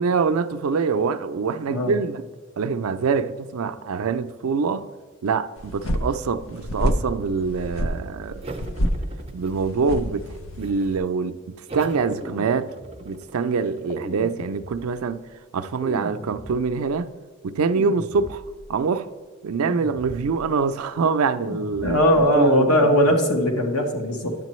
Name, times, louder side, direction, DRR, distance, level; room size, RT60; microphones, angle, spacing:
voice 1, 0.0-2.2 2.6-4.9 5.2-8.5 9.3-12.7 13.0-15.2 15.5-17.1 17.4-18.4 18.7-19.1 19.4-23.1, right 5 dB, 85° right, 0.4 m, -25 dB
voice 2, 1.7-2.0 21.8-24.3, equal, 85° left, 1.3 m, -19 dB
sound 1, 5.6-11.0, equal, 70° left, 0.7 m, -28 dB
sound 2, 8.4-9.9 10.3-11.0 11.7-15.0, right 2 dB, 25° right, 0.5 m, -41 dB
sound 3, 12.0-13.2 13.9-15.1 15.8-16.9 17.7-18.7 19.6-20.6 21.4-22.3, equal, 10° left, 0.6 m, -38 dB
9.8 x 7.4 x 3.1 m
head